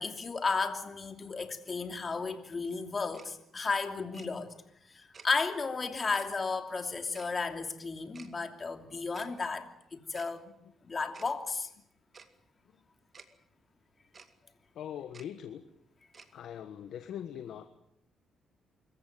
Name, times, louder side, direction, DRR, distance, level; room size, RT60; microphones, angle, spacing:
voice 1, 0.0-4.5 4.9-10.5 10.8-11.7, left 4 dB, 35° left, 6 dB, 2.9 m, -34 dB
Tick-tock, 3.1-3.3 4.1-4.3 5.1-5.3 6.1-6.3 7.1-7.3 8.1-8.3 9.1-9.3 10.1-10.3 11.1-11.3 12.1-12.3 13.1-13.3 14.1-14.3 15.1-15.3 16.1-16.3, right 5 dB, 40° right, 2.2 m, -52 dB
voice 2, 14.7-15.6 16.3-17.7, left 9 dB, 75° left, 9 dB, 1.4 m, -42 dB
25.5 x 14.5 x 9.2 m, 0.78 s
cardioid pair, 90°, 0 cm